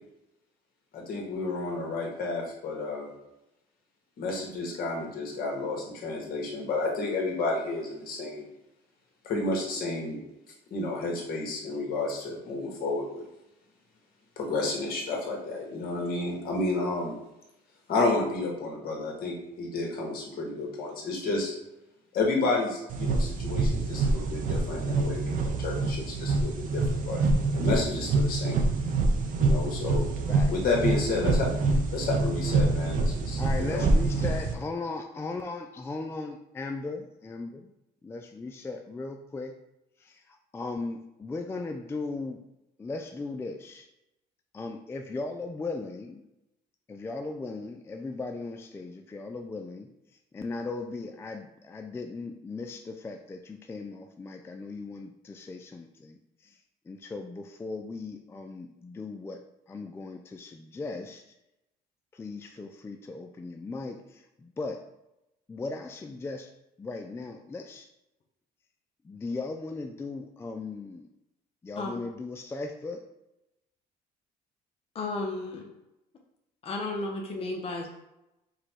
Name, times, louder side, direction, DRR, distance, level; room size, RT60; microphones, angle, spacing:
voice 1, 0.9-3.1 4.2-8.5 9.2-10.2 10.7-13.3 14.4-17.2 17.9-21.5 22.1-27.2 27.5-28.6 29.4-30.1 30.5-31.5 31.9-33.9, left 3 dB, 60° left, -1 dB, 1.4 m, -31 dB
sound 1, 22.9-34.5, right 3 dB, 50° right, 0.7 m, -26 dB
voice 2, 33.4-37.7 38.0-39.6 40.0-42.4 42.8-43.9 44.5-46.2 46.9-49.9 50.3-56.6 56.9-59.4 59.7-61.2 62.1-64.9 65.5-66.5 66.8-67.9 69.0-71.1 71.6-73.1, left 3 dB, 15° left, 4 dB, 0.3 m, -37 dB
voice 3, 71.8-72.1 74.9-75.6 76.6-77.9, left 2 dB, 35° left, 0 dB, 0.7 m, -33 dB
4.9 x 2.2 x 4.4 m, 0.90 s
cardioid pair, 110°, 17 cm